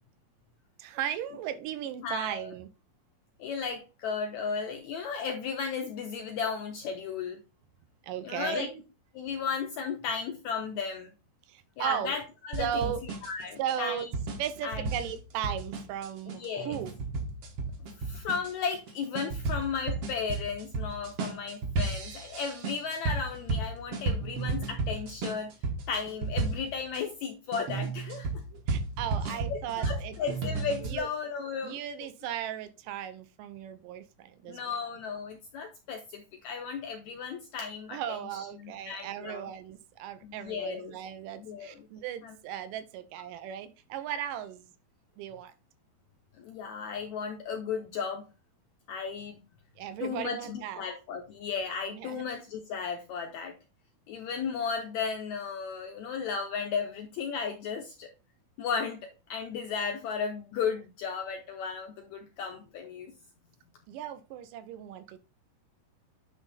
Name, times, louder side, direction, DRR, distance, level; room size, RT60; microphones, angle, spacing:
voice 1, 0.8-2.7 8.0-8.8 11.5-12.2 12.6-13.0 13.6-14.1 14.4-16.9 28.5-30.2 30.8-31.1 31.6-34.7 37.9-44.7 45.2-45.5 49.8-50.9 51.9-52.2 63.9-65.2, right 10 dB, 75° right, 2.2 m, -36 dB
voice 2, 2.0-2.5 3.4-7.4 8.2-8.7 9.1-11.1 11.8-12.9 13.2-14.1 14.6-14.9 16.3-16.8 18.0-25.5 25.9-28.3 29.2-31.8 34.5-39.5 40.2-41.0 41.4-41.8 42.2-42.3 46.4-48.3 48.9-49.4 50.0-53.5 54.1-58.1 58.6-63.1, left 6 dB, 80° left, 1.7 m, -35 dB
sound 1, 12.5-27.0 27.5-31.0, right 3 dB, 60° right, 1.7 m, -34 dB
9.8 x 3.4 x 4.0 m
omnidirectional pair, 4.1 m